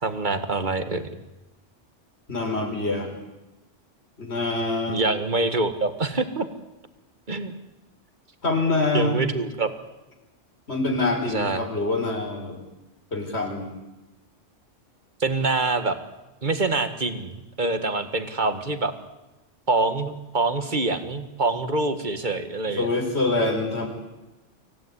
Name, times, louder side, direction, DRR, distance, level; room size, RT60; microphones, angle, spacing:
voice 1, 0.0-1.1 4.9-6.5 7.3-7.6 8.9-9.7 11.3-11.6 15.2-16.0 16.4-18.9 19.7-22.9, right 3 dB, 40° right, 9 dB, 1.9 m, -25 dB
voice 2, 2.3-3.1 4.2-5.0 8.4-9.2 10.7-12.6 13.1-13.7 22.8-23.9, left 2 dB, 60° left, 1 dB, 5.3 m, -25 dB
25.5 x 16.5 x 9.9 m, 1.0 s
omnidirectional pair, 1.3 m